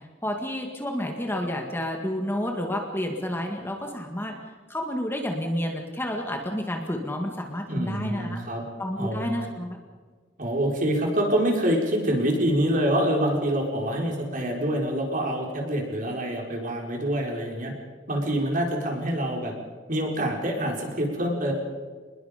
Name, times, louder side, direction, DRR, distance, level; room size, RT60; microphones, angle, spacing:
voice 1, 0.2-4.3 4.7-8.4 8.8-9.8, left 1 dB, 10° left, 2 dB, 2.0 m, -30 dB
voice 2, 7.7-8.6 9.0-9.5 10.4-17.7 18.1-19.5 19.9-21.5, right 1 dB, 45° right, 0 dB, 4.6 m, -26 dB
26.0 x 21.0 x 5.2 m, 1.5 s
head